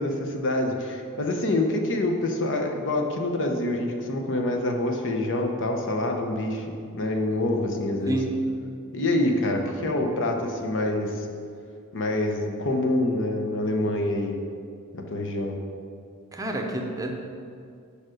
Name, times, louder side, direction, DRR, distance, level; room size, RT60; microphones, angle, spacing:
voice 1, 0.0-6.7 6.9-8.2 8.9-11.3 11.9-14.3 14.9-15.6, left 1 dB, 60° left, 3 dB, 0.9 m, -26 dB
voice 2, 16.3-17.1, right 2 dB, 15° right, 1 dB, 0.7 m, -29 dB
7.2 x 5.0 x 6.4 m, 2.3 s
head